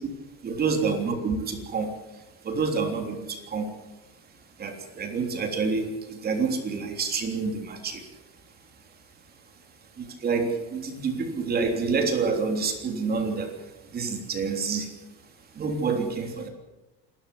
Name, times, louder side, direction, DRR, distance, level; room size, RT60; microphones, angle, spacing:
voice 1, 0.4-1.9 2.4-3.7 4.6-8.0 10.0-13.5 13.9-14.9 15.6-16.5, right 4 dB, 30° right, 4 dB, 3.4 m, -28 dB
27.0 x 13.5 x 8.5 m, 1.1 s
cardioid pair, 150°, 32 cm